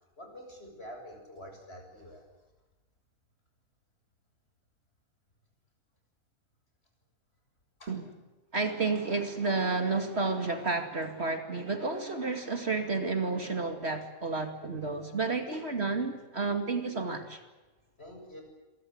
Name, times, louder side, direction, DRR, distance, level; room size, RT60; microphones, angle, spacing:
voice 1, 0.2-2.3 7.8-8.0 18.0-18.4, equal, 45° left, 7.7 m, -47 dB
voice 2, 8.5-17.4, right 3 dB, 50° right, 2.7 m, -31 dB
27.5 x 23.0 x 8.0 m
omnidirectional pair, 1.5 m